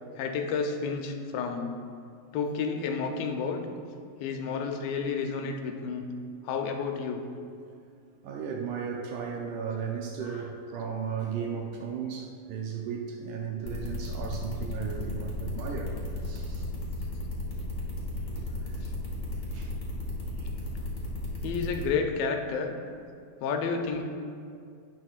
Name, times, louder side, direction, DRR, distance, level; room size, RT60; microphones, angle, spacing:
voice 1, 0.2-1.8 2.3-3.7 4.2-6.0 6.4-7.2 10.2-10.5 15.2-15.3 21.4-22.7 23.4-24.0, left 5 dB, 85° left, 4 dB, 2.5 m, -31 dB
voice 2, 8.2-15.9 16.2-16.7 18.3-18.8 19.5-19.7 20.4-20.5, right 6 dB, 75° right, 0 dB, 1.9 m, -35 dB
sound 1, 13.6-21.8, left 2 dB, 40° left, 1.9 m, -34 dB
17.5 x 6.3 x 2.4 m, 2.3 s
omnidirectional pair, 4.1 m